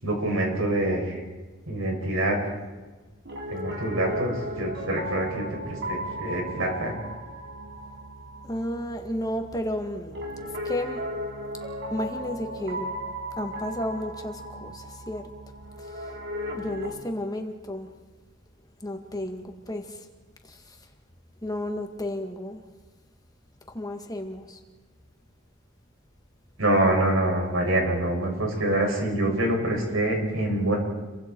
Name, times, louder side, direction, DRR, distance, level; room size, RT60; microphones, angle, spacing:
voice 1, 0.0-1.2 1.7-2.4 3.5-6.9 26.6-30.8, right 1 dB, 85° right, 0 dB, 7.0 m, -25 dB
Piano, 3.2-17.0, equal, 55° right, 3.2 m, -36 dB
voice 2, 8.4-10.1 10.6-11.0 11.9-12.9 13.4-15.3 16.5-17.9 18.8-20.0 20.5-20.8 21.4-22.6 23.7-24.6, left 1 dB, 20° left, 4 dB, 2.0 m, -32 dB
30.0 x 24.0 x 4.7 m, 1.2 s
head